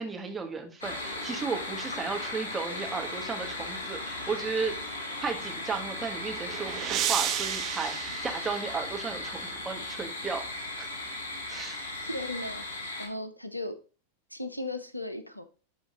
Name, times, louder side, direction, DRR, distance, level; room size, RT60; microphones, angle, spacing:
voice 1, 0.0-4.7 5.2-10.5 10.8-10.9 11.5-11.8, right 5 dB, 15° right, 2 dB, 1.7 m, -34 dB
sound 1, 0.8-13.1, left 2 dB, 70° left, 3.2 m, -37 dB
sound 2, 5.8-9.2, right 11 dB, 35° right, 0.6 m, -33 dB
voice 2, 12.1-13.8 14.3-15.4, left 1 dB, 90° left, 11 dB, 0.6 m, -36 dB
11.0 x 3.8 x 3.9 m, 0.37 s
figure-of-eight pair, 90°, 0 cm